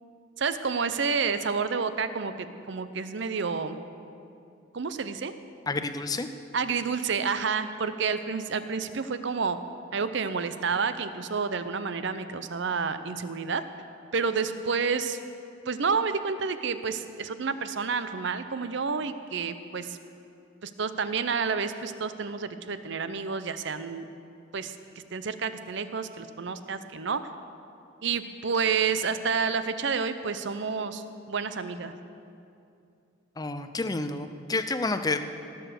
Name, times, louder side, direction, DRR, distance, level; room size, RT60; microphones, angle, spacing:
voice 1, 0.4-3.8 4.7-5.3 6.5-9.6 9.9-13.6 14.1-15.2 15.7-20.0 20.6-24.1 24.5-24.7 25.1-27.2 28.0-31.9, right 5 dB, 60° right, 11 dB, 0.6 m, -29 dB
voice 2, 5.7-6.3 33.4-35.3, left 3 dB, 20° left, 9 dB, 0.5 m, -29 dB
18.5 x 7.0 x 6.5 m, 2.6 s
head